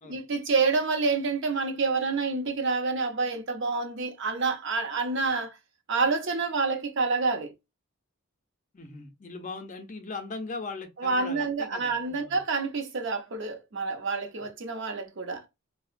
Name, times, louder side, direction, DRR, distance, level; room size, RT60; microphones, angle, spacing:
voice 1, 0.0-5.6 5.9-7.5 11.0-15.4, right 4 dB, 55° right, 0.6 m, -28 dB
voice 2, 8.7-12.4, left 3 dB, 35° left, 0.5 m, -39 dB
2.8 x 2.0 x 2.4 m
head